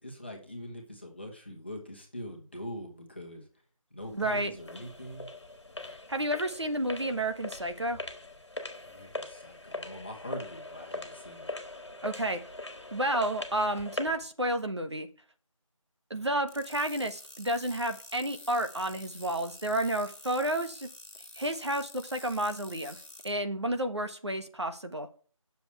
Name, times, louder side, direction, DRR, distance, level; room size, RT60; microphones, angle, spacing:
voice 1, 0.0-3.5 3.9-5.3 8.8-11.5, equal, 20° left, 0 dB, 1.5 m, -43 dB
sound 1, 4.0-14.3, left 2 dB, 55° left, 1.7 m, -42 dB
voice 2, 4.1-4.5 6.1-8.0 12.0-12.4 12.9-15.1 16.1-20.9 21.3-23.0 23.2-25.1, right 1 dB, 55° right, 7 dB, 1.3 m, -31 dB
sound 2, 16.5-23.3, left 1 dB, ahead, 1.7 m, -49 dB
8.7 x 7.0 x 4.6 m, 0.42 s
figure-of-eight pair, 180°, 18 cm